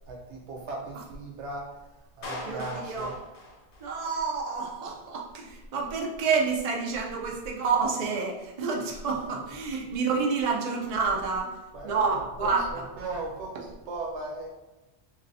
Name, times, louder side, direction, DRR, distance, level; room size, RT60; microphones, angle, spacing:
voice 1, 0.1-1.8 2.2-3.2 8.7-8.8 11.7-14.5, right 2 dB, 80° right, -1 dB, 1.0 m, -37 dB
Clapping, 2.2-4.3, left 2 dB, 55° left, 0.5 m, -41 dB
voice 2, 2.4-3.1 3.8-11.6 11.8-12.9, right 5 dB, 50° right, 0 dB, 0.4 m, -29 dB
3.0 x 3.0 x 2.6 m, 1.0 s
omnidirectional pair, 1.2 m